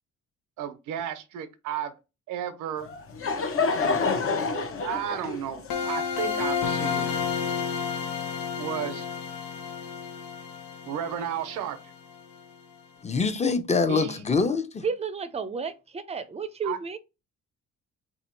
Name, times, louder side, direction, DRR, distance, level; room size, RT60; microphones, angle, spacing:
voice 1, 0.6-1.9 2.3-2.9 4.8-7.1 8.6-9.1 10.9-11.8 13.9-14.2 16.6-16.8, right 9 dB, 90° right, 0.7 m, -33 dB
Laughter / Crowd, 2.8-7.5, left 4 dB, 45° left, 1.0 m, -28 dB
sound 1, 5.7-12.4, left 6 dB, 80° left, 0.9 m, -31 dB
voice 2, 13.0-14.8, left 4 dB, 20° left, 0.7 m, -24 dB
voice 3, 14.8-17.0, right 5 dB, 20° right, 0.5 m, -32 dB
3.6 x 2.8 x 4.4 m
cardioid pair, 90°, 30 cm